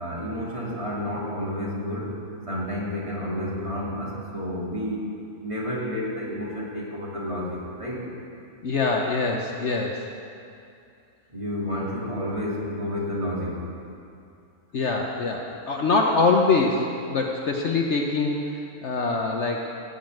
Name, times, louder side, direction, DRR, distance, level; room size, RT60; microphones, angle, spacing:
voice 1, 0.0-2.2 2.5-5.2 5.4-8.1 11.3-13.6, left 1 dB, 20° right, -5 dB, 2.4 m, -30 dB
voice 2, 8.6-10.0 14.7-19.7, left 3 dB, 55° left, 1 dB, 1.1 m, -24 dB
15.5 x 5.6 x 9.0 m, 2.5 s
omnidirectional pair, 1.5 m